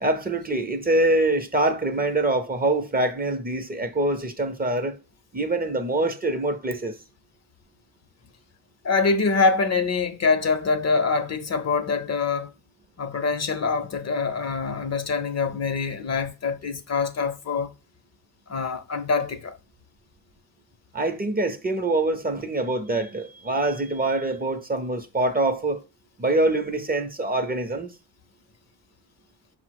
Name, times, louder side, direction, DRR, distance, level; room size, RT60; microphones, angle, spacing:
voice 1, 0.0-5.0 5.3-7.0 20.9-25.8 26.2-27.9, right 2 dB, 25° right, 0.6 m, -24 dB
voice 2, 8.8-12.5 13.0-17.7 18.5-19.5, left 4 dB, 40° left, 0.6 m, -24 dB
5.5 x 2.0 x 4.6 m
cardioid pair, 65°, 40 cm